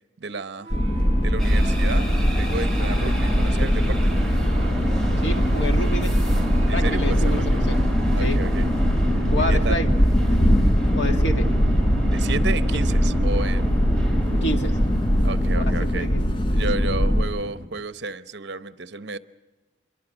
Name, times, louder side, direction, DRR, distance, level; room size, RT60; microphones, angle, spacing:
voice 1, 0.2-0.7 1.2-4.2 6.7-7.6 8.1-8.7 9.2-9.8 10.6-10.7 12.1-13.9 15.2-16.2 16.5-19.2, right 3 dB, 60° right, 12 dB, 0.9 m, -32 dB
sound 1, 0.5-10.9, right 1 dB, 30° right, 7.1 m, -44 dB
sound 2, 0.7-17.2, equal, 25° left, 0.8 m, -21 dB
sound 3, 1.4-17.7, equal, 5° left, 2.8 m, -30 dB
voice 2, 5.2-6.3 6.7-7.8 8.2-8.4 9.2-9.9 10.3-10.4 10.9-11.5 14.3-14.8 15.5-16.2, equal, 65° left, 4 dB, 2.1 m, -29 dB
26.5 x 22.5 x 6.3 m, 1.2 s
head